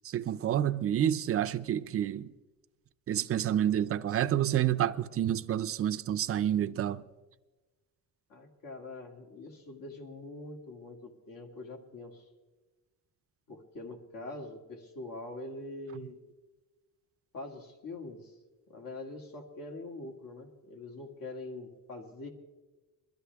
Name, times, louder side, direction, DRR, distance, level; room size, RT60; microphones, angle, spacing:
voice 1, 0.0-2.3 3.1-7.0, right 10 dB, 40° right, 0.5 m, -29 dB
voice 2, 8.3-12.2 13.5-16.2 17.3-18.4 18.7-22.3, left 2 dB, 65° left, 2.0 m, -44 dB
22.5 x 12.5 x 3.4 m
cardioid pair, 160°, 36 cm